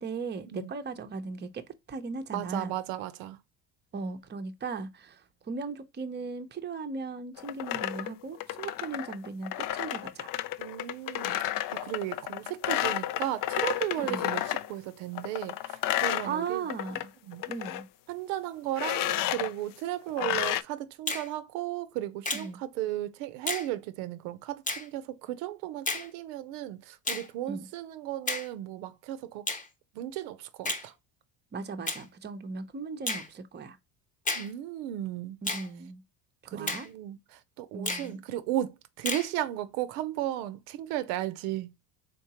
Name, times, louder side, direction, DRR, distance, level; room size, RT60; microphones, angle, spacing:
voice 1, 0.0-1.6 1.9-2.7 3.9-10.3 14.0-14.3 16.0-17.1 17.5-17.9 22.3-22.6 27.5-27.7 31.5-33.8 35.4-36.0 36.4-36.9 37.7-38.2, right 4 dB, 20° right, 0.7 m, -37 dB
voice 2, 2.3-3.4 10.6-11.4 11.7-16.6 17.2-17.4 18.1-29.5 29.9-30.9 34.3-35.4 36.5-41.7, right 13 dB, 75° right, 0.7 m, -35 dB
sound 1, 7.4-14.7 15.1-17.0 17.3-17.8 18.8-19.5 20.2-20.6, left 13 dB, 45° left, 0.4 m, -31 dB
Finger snapping, 21.1-21.3 22.2-22.5 23.5-23.7 24.7-24.9 25.9-26.1 27.1-27.3 28.3-28.5 29.5-29.7 30.6-30.9 31.9-32.0 33.1-33.3 34.3-34.5 35.5-35.7 36.7-36.9 37.9-38.1 39.1-39.3, left 2 dB, 15° left, 0.9 m, -32 dB
3.9 x 3.6 x 2.9 m
hypercardioid pair, 75°, 47 cm